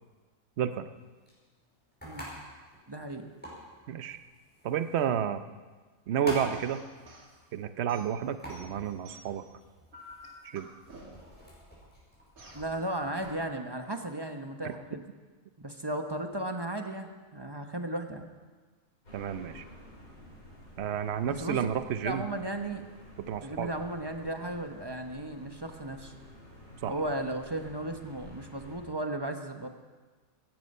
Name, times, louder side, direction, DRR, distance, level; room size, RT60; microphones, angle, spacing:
voice 1, 0.6-0.9 3.9-4.2 4.6-5.4 6.1-6.8 7.5-9.4 10.4-10.7 14.6-14.7 19.1-19.6 20.8-22.3 23.3-23.7 26.8-26.9, right 9 dB, 55° right, 11 dB, 0.9 m, -31 dB
sound 1, 0.9-13.4, equal, 5° left, 5.4 m, -46 dB
voice 2, 2.9-3.2 12.5-15.0 15.6-18.3 21.3-21.6 22.0-22.8 23.4-26.1 26.9-29.7, right 1 dB, 20° right, 5 dB, 0.9 m, -35 dB
sound 2, 6.5-7.3 7.9-9.5 9.9-11.4 12.4-12.7, right 1 dB, 75° right, 2.6 m, -51 dB
sound 3, 19.0-28.8, left 1 dB, 90° left, 6.1 m, -51 dB
17.0 x 14.5 x 5.5 m, 1.4 s
omnidirectional pair, 1.5 m